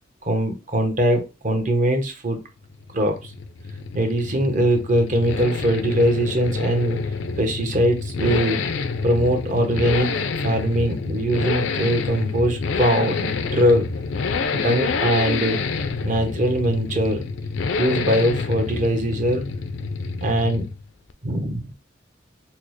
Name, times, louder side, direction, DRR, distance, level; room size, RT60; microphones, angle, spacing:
voice 1, 0.3-2.4 2.9-3.3 3.9-7.0 7.4-8.6 9.0-10.1 10.4-13.9 14.5-15.6 16.0-17.2 17.8-19.5 20.2-20.7 21.2-21.7, right 1 dB, 45° right, 0.8 m, -21 dB
Accelerating revving vroom, 2.7-20.8 21.1-21.2, left 4 dB, 75° left, 0.4 m, -27 dB
4.3 x 2.1 x 3.0 m
head